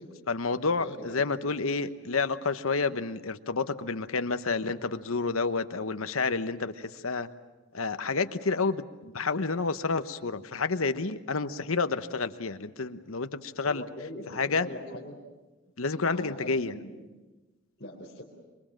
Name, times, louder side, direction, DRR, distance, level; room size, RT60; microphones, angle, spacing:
voice 1, 0.3-7.3 7.7-13.8 14.3-14.7 15.8-16.7, left 4 dB, 85° left, 10 dB, 1.1 m, -29 dB
voice 2, 0.8-1.5 13.6-15.1 16.0-17.1 17.8-18.2, left 1 dB, 50° left, -6 dB, 4.0 m, -42 dB
26.0 x 23.0 x 7.5 m, 1.2 s
head